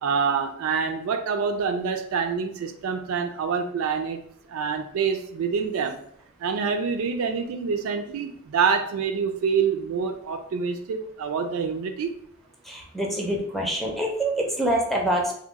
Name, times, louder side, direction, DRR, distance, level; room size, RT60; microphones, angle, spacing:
voice 1, 0.0-4.2 4.5-6.0 6.4-12.2, right 6 dB, 70° right, 0.3 m, -26 dB
voice 2, 12.6-15.3, right 1 dB, ahead, 0.5 m, -25 dB
2.9 x 2.0 x 3.5 m
head